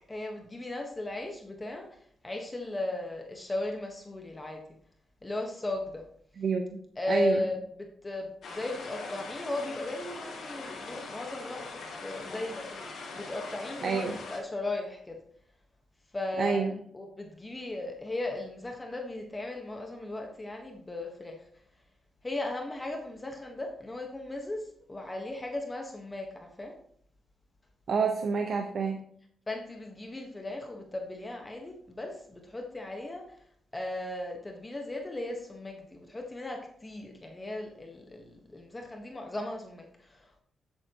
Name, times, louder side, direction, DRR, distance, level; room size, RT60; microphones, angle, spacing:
voice 1, 0.1-4.6 5.2-6.0 7.0-15.2 16.1-16.7 16.9-21.4 22.2-26.7 29.5-33.3 33.7-40.4, left 2 dB, 20° left, 2 dB, 1.3 m, -36 dB
voice 2, 6.4-6.7 7.1-7.4 13.8-14.2 16.4-16.8 27.9-29.0, right 5 dB, 60° right, 4 dB, 1.0 m, -28 dB
sound 1, 8.4-14.4, left 3 dB, 70° left, 3.1 m, -42 dB
9.9 x 8.4 x 3.0 m, 0.65 s
cardioid pair, 95°, 0 cm